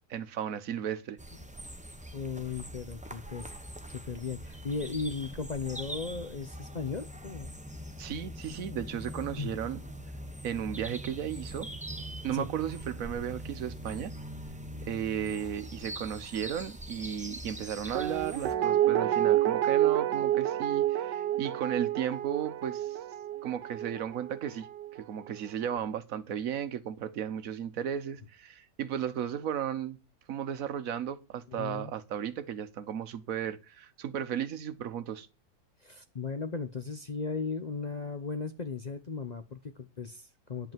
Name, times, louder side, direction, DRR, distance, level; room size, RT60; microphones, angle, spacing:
voice 1, 0.1-1.2 8.0-9.8 10.4-11.7 12.2-14.1 14.8-23.0 23.4-24.7 24.9-30.0 30.3-35.3, right 9 dB, 60° right, 1.2 m, -35 dB
sound 1, 1.2-18.5, equal, 5° right, 0.6 m, -42 dB
voice 2, 2.1-3.6 3.9-7.5 9.4-9.5 12.3-12.5 31.5-31.9 35.8-40.7, left 4 dB, 65° left, 0.4 m, -36 dB
Guitar, 17.9-25.0 25.3-25.4, right 12 dB, 80° right, 1.4 m, -29 dB
10.0 x 5.5 x 7.4 m
omnidirectional pair, 1.8 m